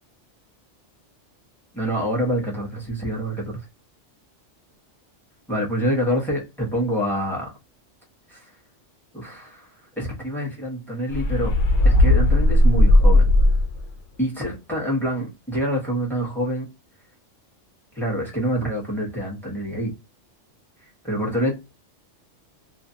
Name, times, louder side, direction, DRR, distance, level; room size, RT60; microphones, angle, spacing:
voice 1, 1.7-3.6 5.5-7.5 8.3-8.4 9.1-9.7 10.0-11.5 11.8-13.3 14.2-16.7 17.9-20.0 21.0-21.5, equal, ahead, 0.9 m, -26 dB
sound 1, 11.1-13.9, left 1 dB, 85° left, 1.0 m, -16 dB
2.5 x 2.3 x 2.6 m
omnidirectional pair, 1.2 m